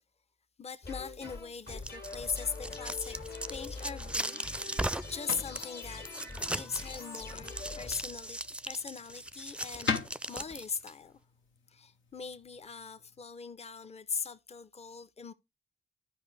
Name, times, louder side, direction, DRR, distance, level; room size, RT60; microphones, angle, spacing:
voice 1, 0.6-3.2 3.5-4.8 5.1-6.1 6.5-8.4 8.6-9.9 10.3-11.2 11.7-15.3, left 5 dB, 35° left, 0.7 m, -40 dB
sound 1, 0.8-8.6, left 3 dB, 55° left, 1.9 m, -44 dB
sound 2, 1.5-10.9, right 1 dB, 5° right, 0.4 m, -38 dB
sound 3, 4.1-13.2, left 5 dB, 85° left, 0.9 m, -43 dB
11.5 x 4.9 x 3.3 m
supercardioid pair, 45°, 19 cm